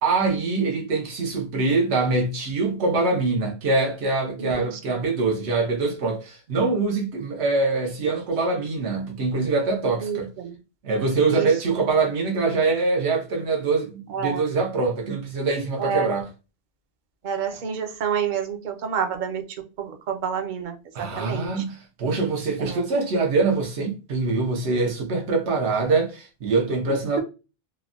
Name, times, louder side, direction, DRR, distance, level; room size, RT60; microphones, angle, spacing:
voice 1, 0.0-10.3 10.8-16.3 20.9-27.2, right 3 dB, 85° right, 1.0 m, -24 dB
voice 2, 10.0-10.5 11.3-11.5 14.1-14.4 15.8-16.2 17.2-19.4 19.8-21.5 22.7-22.8, right 7 dB, 55° right, 0.6 m, -28 dB
3.1 x 2.1 x 2.4 m
omnidirectional pair, 1.1 m